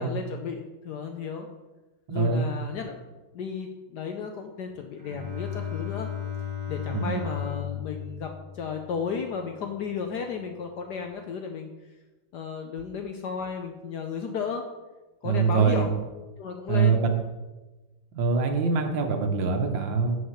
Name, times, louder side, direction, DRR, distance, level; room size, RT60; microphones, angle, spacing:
voice 1, 0.0-1.5 2.1-3.0 3.3-6.1 6.7-11.7 12.3-14.6 15.2-15.9 16.4-17.0, left 6 dB, 70° left, 4 dB, 1.0 m, -34 dB
voice 2, 2.1-2.5 6.9-7.2 15.2-15.9 16.7-17.1 18.1-20.2, right 5 dB, 65° right, 5 dB, 1.6 m, -24 dB
Bowed string instrument, 5.0-9.5, left 8 dB, 15° right, 1.7 m, -35 dB
6.4 x 5.9 x 7.3 m, 1.1 s
omnidirectional pair, 2.4 m